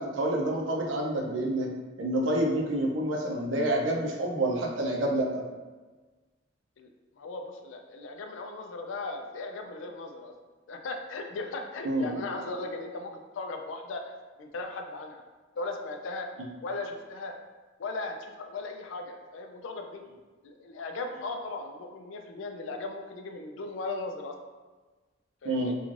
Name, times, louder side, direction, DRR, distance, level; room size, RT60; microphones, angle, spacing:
voice 1, 0.0-1.7 2.0-5.4 11.8-12.1 25.4-25.7, right 1 dB, 75° right, -1 dB, 0.5 m, -28 dB
voice 2, 7.2-10.3 10.7-14.1 14.4-15.2 15.6-16.3 16.6-17.3 17.8-20.0 20.4-24.3 25.4-25.8, left 3 dB, 80° left, 4 dB, 0.4 m, -37 dB
3.1 x 2.3 x 2.4 m, 1.3 s
head